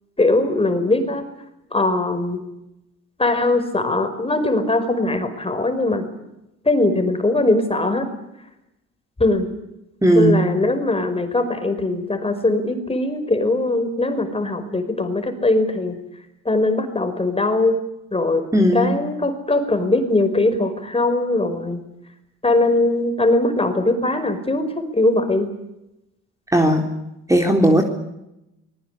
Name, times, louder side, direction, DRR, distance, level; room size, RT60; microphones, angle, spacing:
voice 1, 0.2-1.2 1.7-2.4 3.2-6.1 6.7-8.1 9.2-9.5 10.1-16.0 16.5-17.8 18.1-18.4 18.7-21.8 22.4-25.5, left 2 dB, 20° left, 9 dB, 5.2 m, -20 dB
voice 2, 10.0-10.4 18.5-18.9 26.5-26.9 27.3-27.8, right 1 dB, 10° right, 3 dB, 3.7 m, -16 dB
25.0 x 20.5 x 8.3 m, 0.89 s
cardioid pair, 90°, 30 cm